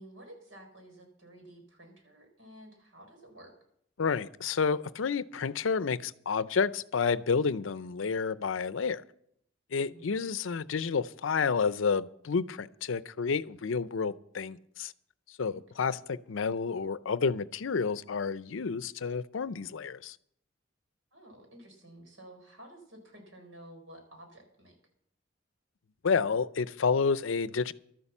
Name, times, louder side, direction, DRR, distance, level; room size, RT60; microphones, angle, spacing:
voice 1, 0.0-3.5 9.8-10.1 15.5-16.1 21.1-24.8, right 1 dB, 85° right, 4.4 m, -52 dB
voice 2, 4.0-9.0 9.7-14.9 15.4-20.1 26.0-27.7, left 5 dB, 80° left, 0.5 m, -30 dB
12.5 x 9.7 x 7.2 m
head